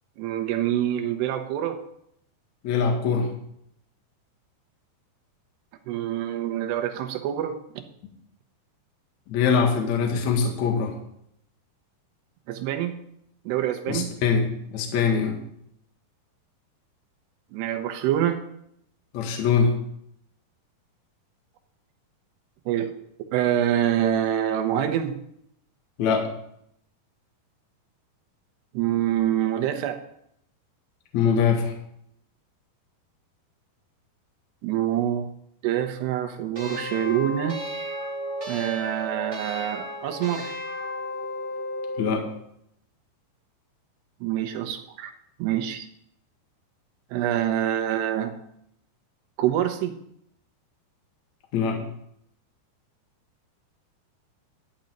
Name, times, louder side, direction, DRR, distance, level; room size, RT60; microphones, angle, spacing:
voice 1, 0.2-1.8 5.9-7.8 12.5-13.0 13.5-14.1 17.5-18.4 22.7-22.9 23.3-25.2 28.7-30.0 34.6-35.3 35.6-37.6 38.5-40.6 44.2-45.1 45.4-45.9 47.1-48.4 49.4-50.0, right 11 dB, 85° right, 6 dB, 3.1 m, -26 dB
voice 2, 2.6-3.3 9.3-10.9 13.9-15.4 19.1-19.7 26.0-26.3 31.1-31.7 42.0-42.2 51.5-51.8, left 6 dB, 55° left, 2 dB, 2.4 m, -23 dB
sound 1, 36.6-42.3, equal, 45° right, 0.9 m, -33 dB
12.0 x 5.3 x 9.0 m, 0.73 s
omnidirectional pair, 4.8 m